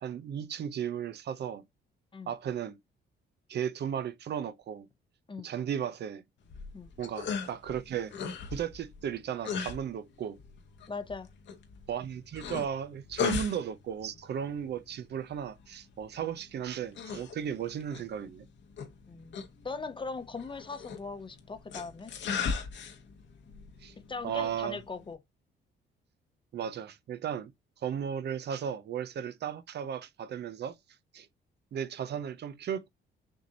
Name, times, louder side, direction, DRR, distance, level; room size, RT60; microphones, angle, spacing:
voice 1, 0.0-1.6 2.3-2.8 3.5-4.9 5.4-6.2 7.0-8.2 8.5-10.4 11.9-18.5 23.8-23.9 24.2-24.8 26.5-27.5 27.8-30.7 31.1-31.3 31.7-32.9, right 8 dB, 60° right, 0.6 m, -35 dB
sound 1, 6.4-25.1, left 6 dB, 65° left, 1.1 m, -39 dB
voice 2, 10.9-11.3 19.1-19.4 19.6-22.1 24.1-25.2, left 4 dB, 25° left, 0.7 m, -39 dB
6.3 x 2.6 x 2.8 m
cardioid pair, 90°, 20 cm